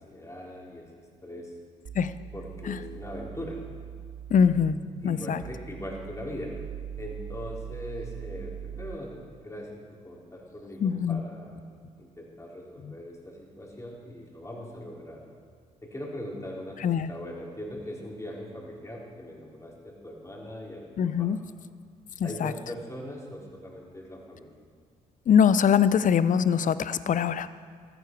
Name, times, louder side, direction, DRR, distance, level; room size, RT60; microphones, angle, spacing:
voice 1, 0.0-1.5 2.3-3.6 5.0-6.6 7.0-11.6 12.0-15.2 15.8-16.8 17.1-21.3 22.2-24.5, left 1 dB, 15° left, -3 dB, 4.1 m, -40 dB
sound 1, 1.8-8.9, right 9 dB, 50° right, 0.8 m, -41 dB
voice 2, 4.3-4.8 5.0-5.4 10.8-11.2 12.8-12.9 16.8-17.1 21.0-21.4 22.2-22.5 25.3-27.5, left 7 dB, 45° left, 15 dB, 0.6 m, -23 dB
14.0 x 13.0 x 4.7 m, 2.1 s
hypercardioid pair, 45°, 18 cm